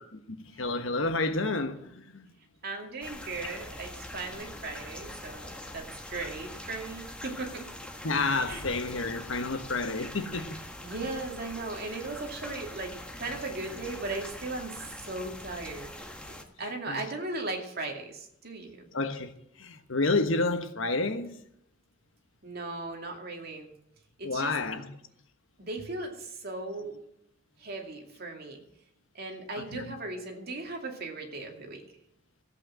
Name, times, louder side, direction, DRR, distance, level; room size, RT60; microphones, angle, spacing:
voice 1, 0.3-2.3 8.0-10.6 16.9-17.0 18.9-19.3 19.6-21.3 24.2-24.9 29.7-29.9, left 3 dB, 75° left, 1.3 m, -30 dB
voice 2, 2.6-7.7 8.5-8.6 10.8-15.9 16.3-18.9 22.4-23.7 24.2-24.5 25.6-27.0 27.6-28.6 29.1-31.8, right 2 dB, 50° right, 2.5 m, -37 dB
sound 1, 3.0-16.4, left 1 dB, 5° left, 1.4 m, -43 dB
14.5 x 8.6 x 7.6 m
head